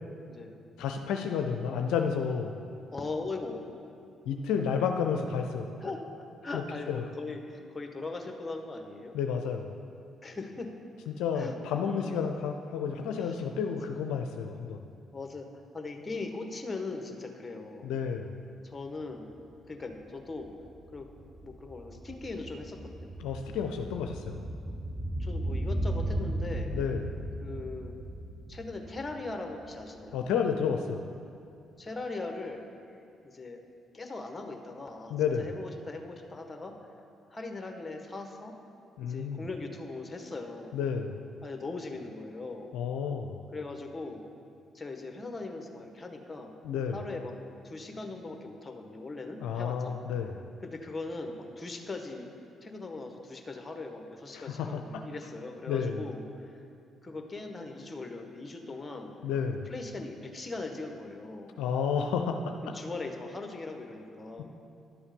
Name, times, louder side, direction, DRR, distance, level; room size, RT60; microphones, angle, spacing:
voice 1, 0.8-2.5 4.3-5.7 6.5-7.0 9.1-9.7 11.1-14.9 17.8-18.3 23.2-24.4 26.7-27.1 30.1-31.0 35.1-35.5 39.0-39.4 40.7-41.2 42.7-43.4 46.6-47.0 49.4-50.4 54.3-55.0 55.7-56.0 59.2-59.7 61.6-62.7, left 6 dB, 80° left, 5 dB, 0.5 m, -31 dB
voice 2, 2.9-3.6 5.8-9.1 10.2-10.7 11.3-11.6 11.8-12.3 13.2-13.4 13.7-13.8 15.1-17.9 18.6-19.3 19.7-20.5 20.9-21.1 21.4-23.1 25.2-26.8 27.4-28.0 28.5-30.2 31.8-33.0 33.2-33.6 33.9-36.7 37.3-38.5 39.0-40.7 41.4-42.7 43.5-44.2 44.7-46.5 46.9-47.3 47.6-49.9 50.6-52.3 52.6-56.6 57.0-59.1 59.7-61.6 62.7-64.4, left 3 dB, 25° left, 4 dB, 1.4 m, -40 dB
sound 1, 19.3-19.4 19.7-30.0 30.3-30.4, right 1 dB, 15° right, 1.0 m, -36 dB
11.0 x 7.1 x 5.3 m, 2.5 s
supercardioid pair, 55°, 0 cm